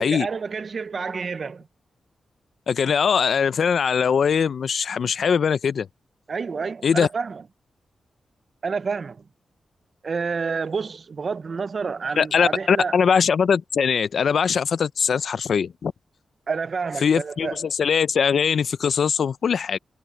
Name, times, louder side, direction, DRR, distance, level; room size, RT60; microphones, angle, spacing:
voice 1, 0.0-1.7 6.3-7.4 8.6-9.2 10.0-13.0 16.5-17.7, right 5 dB, 40° right, 0.4 m, -29 dB
voice 2, 2.7-5.9 6.8-7.1 12.2-15.9 17.0-19.8, left 6 dB, 55° left, 0.4 m, -21 dB
wide cardioid pair, 165°, 0 cm